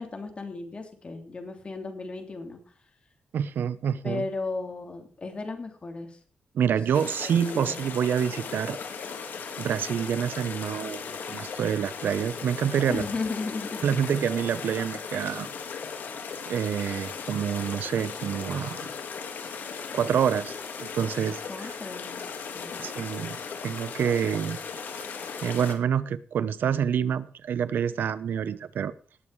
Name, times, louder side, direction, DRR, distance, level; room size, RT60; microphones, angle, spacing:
voice 1, 0.0-2.6 4.0-6.2 6.7-6.8 7.2-7.8 12.9-13.9 21.5-22.2 22.5-22.8, left 3 dB, 35° left, 2.9 m, -35 dB
voice 2, 3.3-4.3 6.5-8.8 9.6-11.0 11.3-13.0 13.8-15.5 16.5-18.8 19.9-21.7 22.8-24.6 25.4-28.9, right 8 dB, 80° right, 0.8 m, -27 dB
sound 1, 6.9-25.7, left 6 dB, 70° left, 2.2 m, -37 dB
18.0 x 7.3 x 4.7 m
cardioid pair, 110°, 3 cm